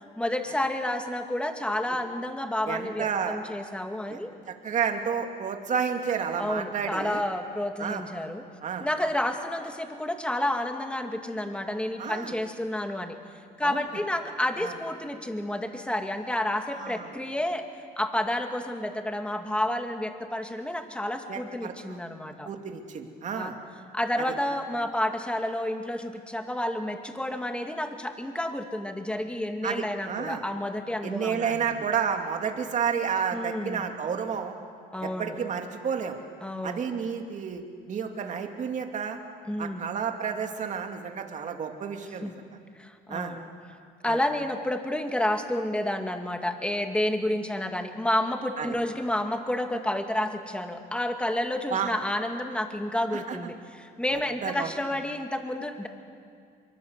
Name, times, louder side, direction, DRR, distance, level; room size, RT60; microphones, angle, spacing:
voice 1, 0.2-4.3 6.4-8.4 8.8-13.2 13.6-17.6 18.0-22.5 23.3-23.5 23.9-31.7 33.3-33.8 34.9-35.4 36.4-36.9 39.5-39.9 42.2-42.3 42.8-43.5 44.0-55.9, left 1 dB, 5° left, 5 dB, 2.2 m, -30 dB
voice 2, 2.7-3.4 4.1-4.2 4.5-7.2 7.8-8.0 8.6-8.9 12.0-12.3 13.6-13.8 14.6-14.7 16.8-17.1 21.3-22.0 22.4-23.6 24.2-24.3 29.6-30.4 31.0-34.6 35.0-36.2 36.6-39.2 39.6-42.3 43.1-43.4 44.0-44.2 48.6-48.7 51.7-51.9 53.1-53.4 54.1-54.7, right 7 dB, 45° right, 4 dB, 2.6 m, -31 dB
25.5 x 23.5 x 8.2 m, 2.2 s
cardioid pair, 110°, 17 cm